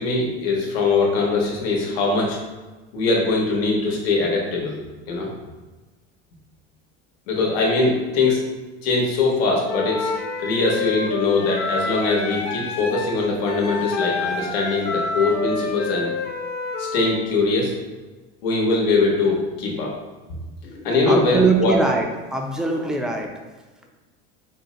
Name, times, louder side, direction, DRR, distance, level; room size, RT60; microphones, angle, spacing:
voice 1, 0.0-2.4 2.9-4.8 5.1-5.3 7.3-8.4 8.8-10.1 10.4-16.1 16.8-17.8 18.4-19.9 20.6-21.7, left 3 dB, 85° left, -1 dB, 1.1 m, -21 dB
Wind instrument woodwind instrument, 9.7-17.1, left 4 dB, 35° left, 0.6 m, -28 dB
voice 2, 21.1-23.3, right 3 dB, ahead, 1 dB, 0.4 m, -22 dB
4.2 x 2.1 x 3.7 m, 1.2 s
supercardioid pair, 110°, 29 cm